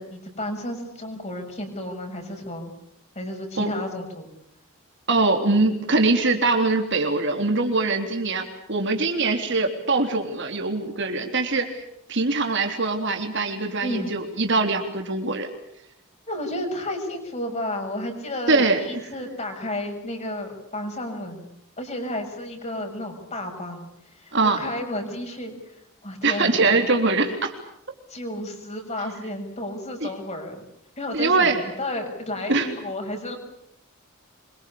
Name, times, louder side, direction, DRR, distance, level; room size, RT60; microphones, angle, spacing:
voice 1, 0.0-2.7 3.1-4.3 13.8-14.1 16.3-21.5 21.8-23.9 24.2-25.8 26.0-26.6 28.1-30.6 31.0-33.4, left 1 dB, 30° left, 3 dB, 6.7 m, -32 dB
voice 2, 5.1-11.8 12.1-15.5 18.5-19.0 24.3-24.6 26.2-27.5 30.0-30.1 31.1-31.6 32.5-32.7, right 3 dB, 55° right, 4 dB, 3.5 m, -22 dB
26.0 x 24.5 x 8.6 m, 0.76 s
head